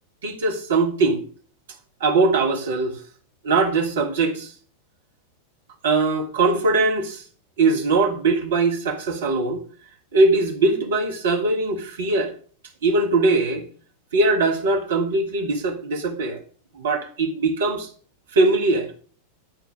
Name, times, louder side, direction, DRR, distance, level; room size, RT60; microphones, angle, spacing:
voice 1, 0.2-1.2 2.0-3.0 3.4-4.5 5.8-7.2 7.6-9.6 10.1-12.3 12.8-13.7 14.1-16.4 16.8-17.9 18.3-18.9, right 3 dB, 60° right, 1.9 m, -21 dB
11.0 x 4.5 x 6.1 m
figure-of-eight pair, 90°, 0 cm